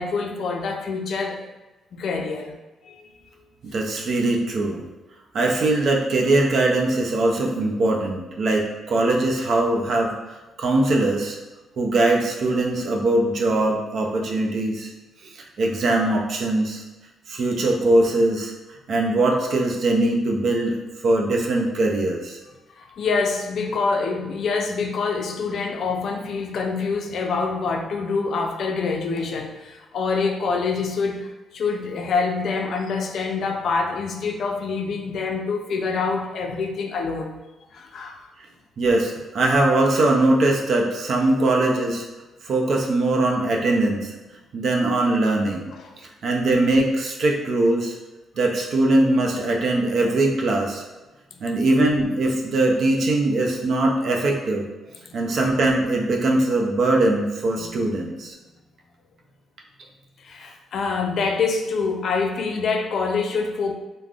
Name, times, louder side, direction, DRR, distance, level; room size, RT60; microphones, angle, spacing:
voice 1, 0.0-1.4 1.9-2.6 2.8-3.1 22.8-37.4 37.7-38.3 45.7-45.8 55.1-55.2 57.7-57.8 60.2-63.7, left 4 dB, 65° left, 4 dB, 0.3 m, -26 dB
voice 2, 3.6-4.8 5.3-11.4 11.8-14.9 15.2-16.8 17.3-18.5 18.9-20.8 21.0-22.4 38.8-42.0 42.4-44.1 44.5-45.7 46.2-47.9 48.4-50.8 51.4-54.7 55.1-58.3, right 2 dB, 60° right, 0 dB, 0.5 m, -21 dB
3.5 x 2.0 x 2.3 m, 1.1 s
cardioid pair, 90°, 0 cm